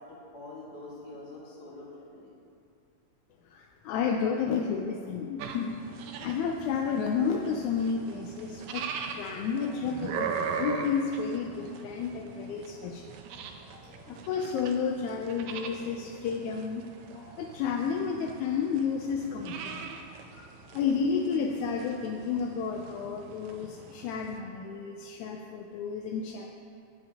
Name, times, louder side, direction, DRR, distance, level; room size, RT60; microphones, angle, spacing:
voice 1, 0.0-2.3 17.4-17.5, left 2 dB, 40° left, -6 dB, 1.7 m, -45 dB
voice 2, 3.5-5.8 6.2-8.9 9.2-13.1 13.7-16.9 17.1-19.8 20.4-20.5 20.7-26.5, left 6 dB, 85° left, 2 dB, 2.0 m, -31 dB
sound 1, 5.4-24.4, right 6 dB, 90° right, 2.1 m, -41 dB
21.5 x 7.7 x 2.9 m, 2.6 s
omnidirectional pair, 3.3 m